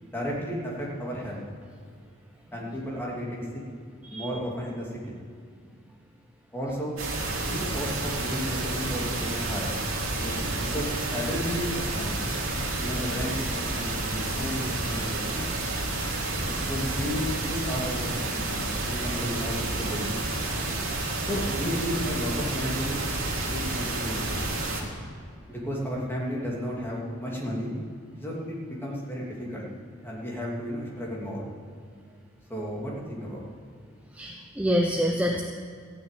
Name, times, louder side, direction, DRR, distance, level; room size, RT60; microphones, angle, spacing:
voice 1, 0.0-1.4 2.5-3.5 4.1-5.2 6.5-7.0 7.4-9.7 10.1-12.3 12.8-15.5 16.5-18.0 18.3-20.1 21.2-23.0 23.4-24.6 25.5-27.7 28.2-29.7 30.0-31.5 32.5-33.4, equal, 10° left, -4 dB, 2.8 m, -33 dB
sound 1, 7.0-24.8, right 2 dB, 85° right, 2.6 m, -30 dB
voice 2, 34.1-35.4, equal, 5° right, 2 dB, 0.7 m, -26 dB
14.5 x 6.5 x 9.2 m, 2.2 s
head